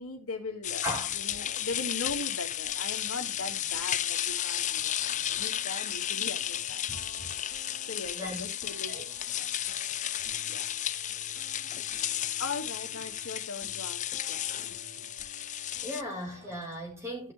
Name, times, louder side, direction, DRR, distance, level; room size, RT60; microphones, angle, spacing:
voice 1, 0.0-0.8 1.1-6.9 7.4-9.0 9.4-9.5 10.5-10.7 12.4-14.8, left 3 dB, 75° left, 2.8 m, -39 dB
sound 1, 0.6-16.0, left 11 dB, 35° left, 0.5 m, -33 dB
sound 2, 0.6-16.8, right 2 dB, 50° right, 3.6 m, -54 dB
voice 2, 0.8-1.1 4.6-4.7 6.9-7.4 8.1-8.5 8.9-9.0 15.2-15.5 15.8-17.3, equal, 10° right, 3.9 m, -38 dB
16.5 x 5.7 x 3.2 m
head